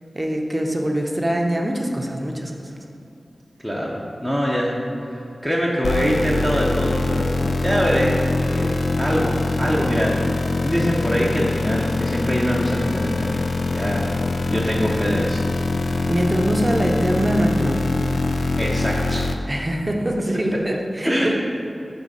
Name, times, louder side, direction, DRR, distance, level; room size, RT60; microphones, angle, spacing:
voice 1, 0.1-2.7 16.0-17.9 19.5-21.3, right 1 dB, 25° right, 1 dB, 0.7 m, -23 dB
voice 2, 3.6-4.7 5.1-8.2 8.5-10.3 10.6-13.4 13.7-14.1 14.5-15.4 18.6-19.3 20.5-20.6 21.0-21.3, equal, 10° left, -5 dB, 0.8 m, -23 dB
sound 1, 5.8-19.4, left 2 dB, 75° left, 0.3 m, -23 dB
6.2 x 3.3 x 5.4 m, 2.8 s
cardioid pair, 50°, 0 cm